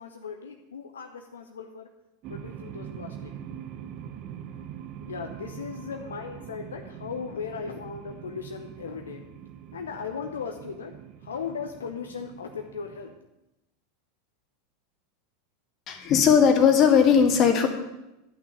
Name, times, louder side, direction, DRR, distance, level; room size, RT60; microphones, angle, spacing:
voice 1, 0.0-1.9 2.3-3.3 5.1-9.2 9.7-10.9 11.2-13.1, left 6 dB, 75° left, 4 dB, 0.8 m, -37 dB
sound 1, 2.2-13.2, right 9 dB, 45° right, 1.0 m, -43 dB
voice 2, 15.9-17.7, left 7 dB, 40° left, 5 dB, 2.0 m, -18 dB
11.5 x 6.1 x 8.0 m, 0.95 s
figure-of-eight pair, 85°, 0 cm